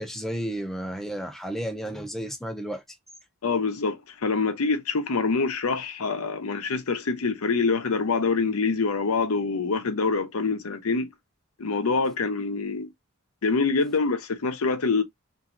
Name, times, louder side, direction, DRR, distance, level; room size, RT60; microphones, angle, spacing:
voice 1, 0.0-2.8, equal, ahead, 0.5 m, -32 dB
voice 2, 3.4-11.1 11.6-12.9 13.4-15.0, left 4 dB, 80° left, 0.7 m, -25 dB
3.0 x 2.6 x 2.5 m
head